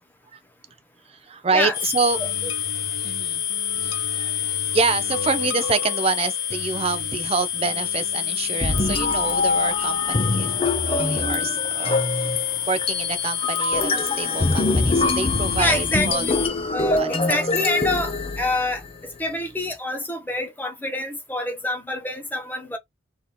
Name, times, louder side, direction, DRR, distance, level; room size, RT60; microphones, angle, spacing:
voice 1, 1.1-2.2 3.0-3.4 3.8-10.5 10.9-16.3 17.0-17.1, right 4 dB, 30° right, 0.5 m, -27 dB
sound 1, 1.7-16.5, left 10 dB, 65° left, 1.5 m, -28 dB
sound 2, 2.1-10.7, left 4 dB, 85° left, 0.7 m, -39 dB
sound 3, 8.6-18.9, left 3 dB, 30° left, 0.6 m, -24 dB
voice 2, 15.6-16.4 16.7-22.8, left 2 dB, 10° left, 1.1 m, -27 dB
3.5 x 2.9 x 4.2 m
head